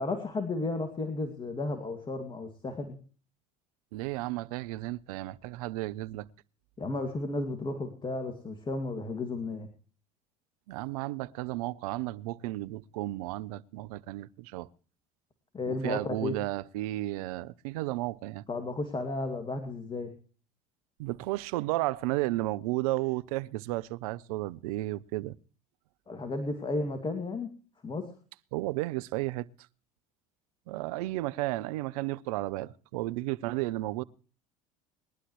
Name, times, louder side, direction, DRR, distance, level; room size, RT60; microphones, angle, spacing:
voice 1, 0.0-3.0 6.8-9.7 15.5-16.4 18.5-20.1 26.1-27.5 27.8-28.1, left 2 dB, 25° left, 2.3 m, -33 dB
voice 2, 3.9-6.3 10.7-14.7 15.7-18.4 21.0-25.4 28.5-29.5 30.7-34.0, right 18 dB, 75° right, 0.7 m, -33 dB
21.5 x 11.5 x 3.2 m
hypercardioid pair, 75°, 19 cm